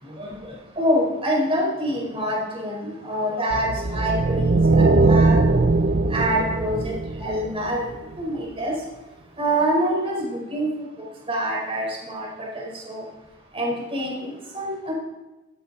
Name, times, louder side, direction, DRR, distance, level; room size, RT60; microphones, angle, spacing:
voice 1, 0.0-5.7 6.1-7.9 8.2-8.7 9.4-10.9 11.3-12.3 12.5-13.0 13.5-14.9, right 1 dB, 25° right, -2 dB, 4.6 m, -26 dB
sound 1, 3.5-7.9, right 3 dB, 40° right, 0.6 m, -20 dB
16.0 x 14.0 x 4.2 m, 1.1 s
head